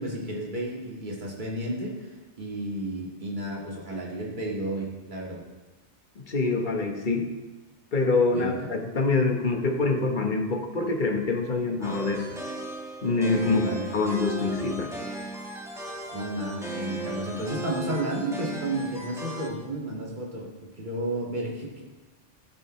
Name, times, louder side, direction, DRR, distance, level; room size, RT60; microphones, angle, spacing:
voice 1, 0.0-5.4 8.3-8.6 13.4-13.9 15.8-21.8, right 1 dB, 40° right, -3 dB, 2.2 m, -32 dB
voice 2, 6.2-7.3 7.9-12.3 13.0-13.6 13.9-14.9, left 3 dB, 45° left, 3 dB, 1.4 m, -25 dB
sound 1, 11.8-19.5, right 2 dB, 5° right, 1.3 m, -36 dB
13.0 x 8.8 x 3.2 m, 1.2 s
omnidirectional pair, 1.2 m